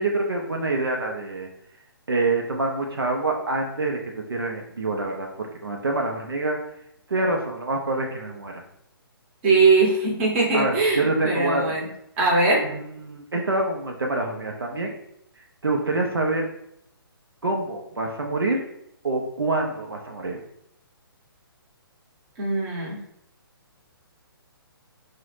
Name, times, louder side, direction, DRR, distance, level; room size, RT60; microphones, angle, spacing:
voice 1, 0.0-1.5 2.1-6.6 7.1-8.6 10.5-11.8 12.6-14.9 15.6-16.5 17.4-18.6 19.0-20.4, right 2 dB, 75° right, 1 dB, 0.5 m, -26 dB
voice 2, 9.4-11.9 12.2-12.7 22.4-23.0, right 3 dB, 30° right, -3 dB, 0.8 m, -21 dB
3.7 x 2.1 x 3.1 m, 0.75 s
figure-of-eight pair, 130°, 13 cm